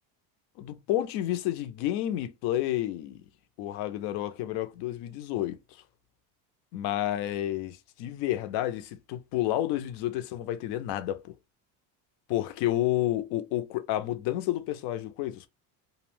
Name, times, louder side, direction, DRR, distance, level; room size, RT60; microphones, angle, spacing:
voice 1, 0.6-3.2 3.6-5.6 6.7-11.3 12.3-15.5, left 13 dB, 65° left, 0.5 m, -30 dB
2.6 x 2.0 x 3.0 m
cardioid pair, 165°, 42 cm